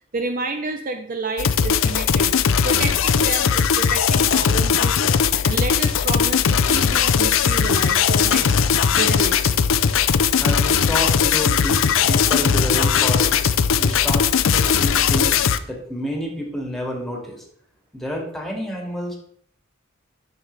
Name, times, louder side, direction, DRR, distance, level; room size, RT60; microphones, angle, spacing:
voice 1, 0.1-2.3 2.6-8.6 8.9-9.6, right 3 dB, 40° right, 5 dB, 0.6 m, -30 dB
sound 1, 1.4-15.6, left 7 dB, 70° left, 0.5 m, -18 dB
voice 2, 10.4-13.4 13.8-14.2 14.5-15.4 15.6-17.4 17.9-19.2, equal, ahead, -1 dB, 2.1 m, -29 dB
10.0 x 6.5 x 3.3 m, 0.65 s
head